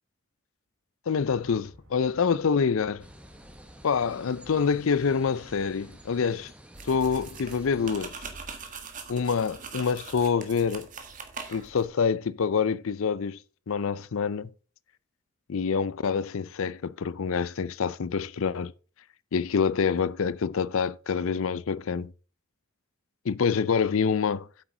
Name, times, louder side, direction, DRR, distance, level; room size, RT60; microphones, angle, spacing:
voice 1, 1.1-3.0 3.8-6.5 6.9-8.2 9.1-10.9 11.5-13.4 13.7-14.5 15.5-18.7 19.3-22.1 23.3-24.5, left 6 dB, 70° left, 0.5 m, -26 dB
sound 1, 1.2-6.4, equal, 75° right, 4.7 m, -56 dB
sound 2, 3.0-8.1, right 1 dB, 5° right, 1.0 m, -51 dB
sound 3, 6.7-11.9, right 5 dB, 35° right, 1.5 m, -42 dB
8.8 x 8.3 x 3.8 m
head